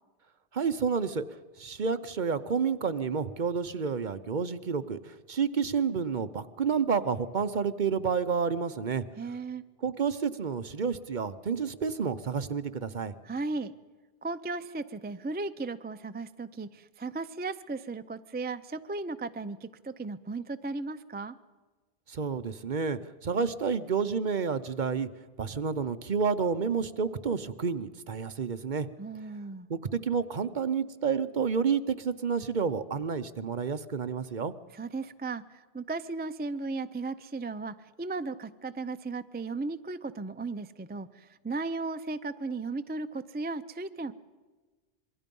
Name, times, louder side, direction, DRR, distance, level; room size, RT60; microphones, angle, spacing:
voice 1, 0.5-1.3 1.6-9.0 9.8-13.1 22.1-25.1 25.4-28.9 29.7-34.5, right 6 dB, 50° right, 12 dB, 0.9 m, -30 dB
voice 2, 9.2-9.6 13.2-13.7 14.2-21.4 29.0-29.7 34.7-44.1, right 3 dB, 15° right, 11 dB, 0.4 m, -36 dB
27.0 x 22.5 x 5.4 m, 1.3 s
omnidirectional pair, 1.1 m